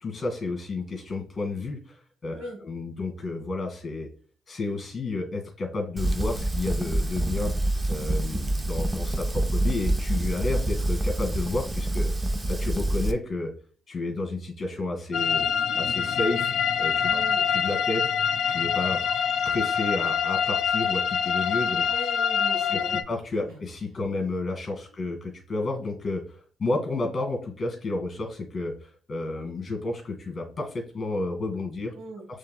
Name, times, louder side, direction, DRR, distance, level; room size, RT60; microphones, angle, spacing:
voice 1, 0.0-4.1 4.5-7.5 7.9-12.1 12.5-13.5 13.9-15.5 15.7-16.5 16.8-17.2 17.5-18.0 18.5-19.0 19.4-21.9 22.7-31.9, left 2 dB, 35° left, 3 dB, 2.1 m, -31 dB
Fire, 6.0-13.1, right 1 dB, 20° right, 0.5 m, -26 dB
sound 1, 15.1-23.0, left 7 dB, 65° left, 0.4 m, -25 dB
voice 2, 17.1-17.5 21.9-23.1 23.4-23.5 32.0-32.3, right 1 dB, 85° right, 2 dB, 1.7 m, -39 dB
6.5 x 3.5 x 2.3 m, 0.42 s
cardioid pair, 90°, 0 cm